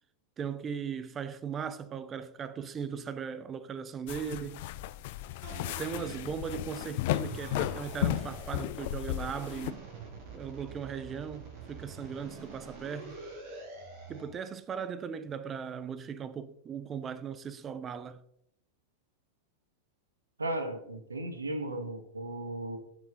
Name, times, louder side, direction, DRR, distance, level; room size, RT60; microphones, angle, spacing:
voice 1, 0.4-4.7 5.8-9.8 10.3-13.2 14.1-18.2, right 7 dB, 25° right, 0.5 m, -38 dB
sound 1, 4.1-9.7, left 15 dB, 50° left, 0.3 m, -34 dB
sound 2, 5.4-6.7 7.1-8.7 9.1-14.3, right 4 dB, 45° right, 2.5 m, -46 dB
voice 2, 20.4-22.8, right 1 dB, 75° right, 1.0 m, -35 dB
10.5 x 5.4 x 3.8 m
figure-of-eight pair, 90°, 0 cm